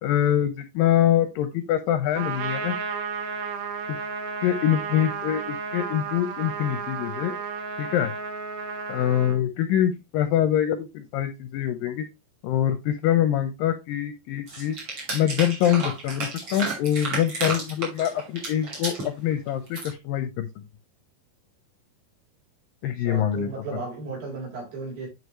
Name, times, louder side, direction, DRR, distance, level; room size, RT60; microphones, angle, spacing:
voice 1, 0.0-2.8 3.9-4.0 4.4-7.4 7.8-8.1 8.9-12.1 12.4-14.8 15.1-20.5 22.8-23.5, left 11 dB, 80° left, 2.1 m, -24 dB
Trumpet, 2.2-9.4, right 5 dB, 85° right, 3.2 m, -32 dB
sound 1, 14.5-19.1 19.5-19.9, right 3 dB, 35° right, 3.0 m, -32 dB
voice 2, 23.0-25.1, right 4 dB, 60° right, 5.8 m, -35 dB
9.7 x 4.9 x 3.1 m
omnidirectional pair, 4.7 m